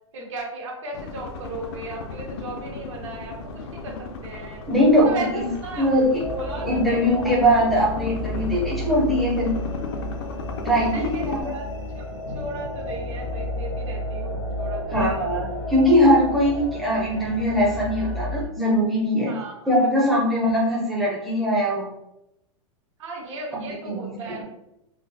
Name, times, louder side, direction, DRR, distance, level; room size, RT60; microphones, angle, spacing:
voice 1, 0.1-4.6 4.9-5.9 6.3-7.0 10.9-11.7 11.9-12.1 12.3-15.3 19.2-20.2 23.0-24.4, right 2 dB, 65° right, 0 dB, 1.1 m, -36 dB
sound 1, 0.9-11.4, left 4 dB, 50° left, 0.4 m, -36 dB
voice 2, 4.7-5.5 5.8-6.2 6.7-9.5 10.6-11.5 14.9-19.3 19.7-21.9 23.5-24.4, equal, ahead, -4 dB, 0.5 m, -21 dB
sound 2, 6.2-18.5, left 1 dB, 80° left, 0.9 m, -32 dB
3.7 x 2.0 x 2.6 m, 0.85 s
supercardioid pair, 165°, 17 cm